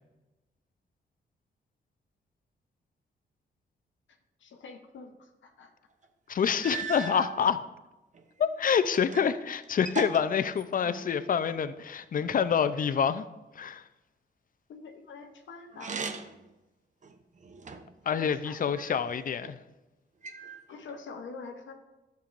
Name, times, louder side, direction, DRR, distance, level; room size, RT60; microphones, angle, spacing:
voice 1, 4.4-5.7 12.2-12.3 14.7-16.0 18.1-18.6 20.7-21.7, left 4 dB, 80° left, 3 dB, 0.9 m, -45 dB
sound 1, 6.0-6.1 6.6-7.4 8.1-9.4 9.6-11.2 15.7-16.5 17.0-18.0 18.7-19.5 20.2-21.0, right 4 dB, 40° right, 0.7 m, -39 dB
voice 2, 6.3-7.6 8.4-13.2 13.6-13.8 18.1-19.6, left 7 dB, 45° left, 13 dB, 0.5 m, -27 dB
11.5 x 6.9 x 2.5 m, 1.1 s
cardioid pair, 90°, 19 cm